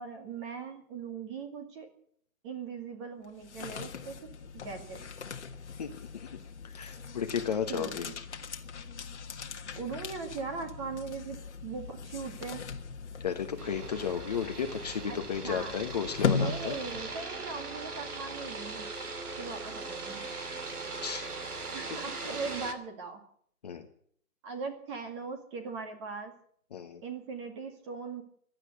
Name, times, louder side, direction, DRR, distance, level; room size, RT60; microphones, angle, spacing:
voice 1, 0.0-1.9 2.4-4.2 4.6-5.0 7.7-8.1 9.8-12.6 15.1-15.7 16.3-18.9 19.4-20.2 21.7-23.2 24.4-26.3 27.0-28.2, right 5 dB, 20° right, 5 dB, 2.1 m, -39 dB
sound 1, 3.2-17.3, left 5 dB, 50° left, 1.6 m, -38 dB
voice 2, 5.8-6.3 6.6-8.1 13.2-16.8 20.1-21.2 23.6-23.9 26.7-27.0, left 7 dB, 30° left, 5 dB, 1.1 m, -34 dB
sound 2, 13.6-22.7, right 3 dB, 85° right, 3.1 m, -40 dB
16.0 x 11.0 x 8.1 m, 0.63 s
hypercardioid pair, 160°, 44 cm